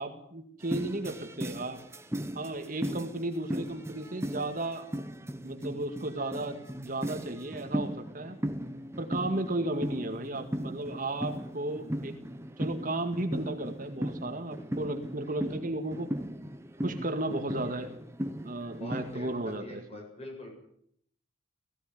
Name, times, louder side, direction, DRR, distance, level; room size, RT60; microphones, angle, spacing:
voice 1, 0.0-1.8 2.3-4.9 5.4-8.4 9.0-12.2 12.6-16.1 16.8-17.9 18.4-20.0, right 2 dB, 40° right, 5 dB, 2.0 m, -34 dB
sound 1, 0.6-19.6, equal, 15° right, 1.2 m, -37 dB
voice 2, 18.8-19.3 19.6-20.5, left 1 dB, 30° left, 1 dB, 7.8 m, -44 dB
17.5 x 17.0 x 9.6 m, 0.68 s
head